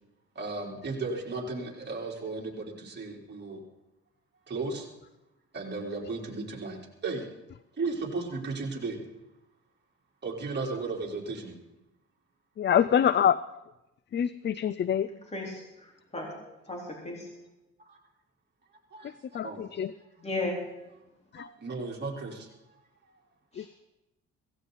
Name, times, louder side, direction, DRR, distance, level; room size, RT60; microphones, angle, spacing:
voice 1, 0.4-3.6 4.5-4.8 5.5-7.2 7.8-9.0 10.2-11.6 18.9-19.1 19.4-19.6 21.4-22.5, right 3 dB, 35° right, -2 dB, 4.0 m, -35 dB
voice 2, 12.6-13.4 14.1-15.1 19.3-19.9 21.3-21.5 23.6-23.7, left 9 dB, 35° left, 16 dB, 0.5 m, -25 dB
voice 3, 15.3-16.3 16.7-17.3 20.2-20.6 23.5-23.7, left 2 dB, 20° left, -2 dB, 3.9 m, -35 dB
17.0 x 16.5 x 4.1 m, 0.95 s
cardioid pair, 90°, 30 cm